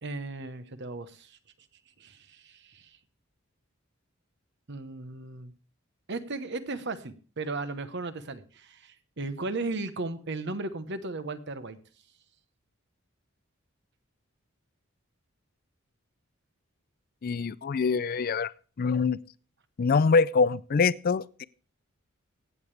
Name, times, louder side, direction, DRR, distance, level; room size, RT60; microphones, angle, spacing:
voice 1, 0.0-1.4 2.0-3.0 4.7-5.5 6.1-11.8, right 3 dB, 55° right, 1.0 m, -36 dB
voice 2, 17.2-18.5 18.8-19.2 19.8-21.4, left 5 dB, 45° left, 0.4 m, -24 dB
16.0 x 8.9 x 3.3 m
head